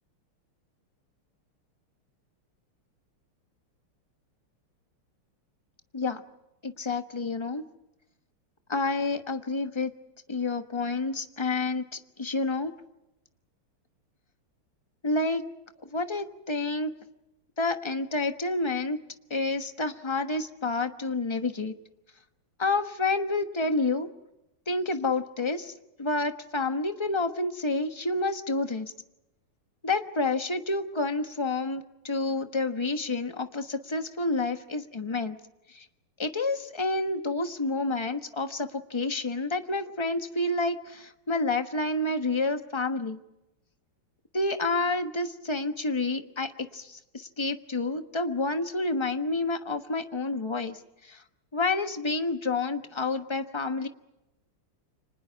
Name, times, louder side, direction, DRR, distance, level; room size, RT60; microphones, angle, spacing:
voice 1, 6.6-7.6 8.7-9.9 10.3-12.7 15.0-15.4 15.9-16.9 17.6-19.0 19.3-21.7 22.6-24.1 24.7-25.7 26.0-28.9 29.8-35.4 35.7-35.8 36.2-43.2 44.3-51.2 51.5-53.9, left 3 dB, 20° left, 7 dB, 0.8 m, -29 dB
30.0 x 26.0 x 4.7 m, 0.92 s
omnidirectional pair, 2.4 m